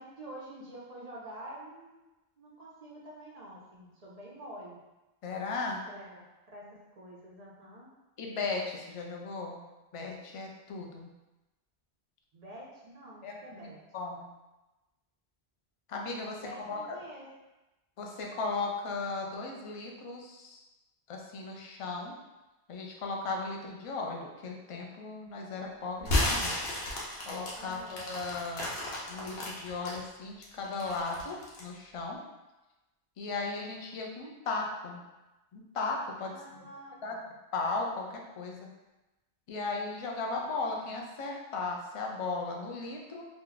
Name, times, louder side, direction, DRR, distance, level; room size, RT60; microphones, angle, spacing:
voice 1, 0.0-2.1 2.4-4.8 5.9-6.6 6.9-7.9 12.3-13.8 16.4-17.3 27.6-28.1 36.3-37.2, right 1 dB, 50° right, -4 dB, 0.5 m, -47 dB
voice 2, 5.2-5.8 8.2-9.6 9.9-11.1 13.2-14.3 15.9-17.0 18.0-20.6 21.1-22.1 22.7-26.6 27.2-28.7 29.1-32.2 33.2-35.0 35.5-36.7 37.0-37.2 37.5-38.7 39.5-43.3, left 3 dB, 50° left, 0 dB, 0.4 m, -36 dB
sound 1, 26.0-30.0 30.4-31.7, left 1 dB, 70° left, 1.0 m, -32 dB
2.9 x 2.3 x 3.8 m, 1.1 s
omnidirectional pair, 1.1 m